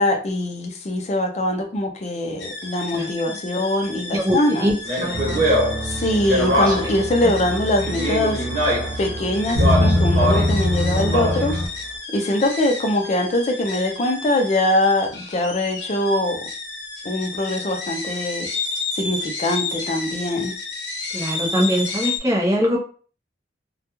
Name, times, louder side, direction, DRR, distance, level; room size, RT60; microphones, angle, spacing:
voice 1, 0.0-4.7 5.8-8.5 9.0-11.5 12.1-16.4 17.0-18.5 18.9-20.5, left 1 dB, 40° left, 4 dB, 0.4 m, -22 dB
sound 1, 2.4-22.2, left 3 dB, 80° left, 0.7 m, -32 dB
voice 2, 2.9-3.3 4.1-5.4 21.1-22.8, equal, 20° right, -2 dB, 0.6 m, -22 dB
Speech, 4.8-7.0 7.8-9.0 9.5-10.6 10.9-11.6, equal, 50° right, 1.1 m, -23 dB
sound 2, 5.1-11.7, left 1 dB, 80° right, 0.7 m, -24 dB
2.2 x 2.2 x 2.9 m, 0.41 s
head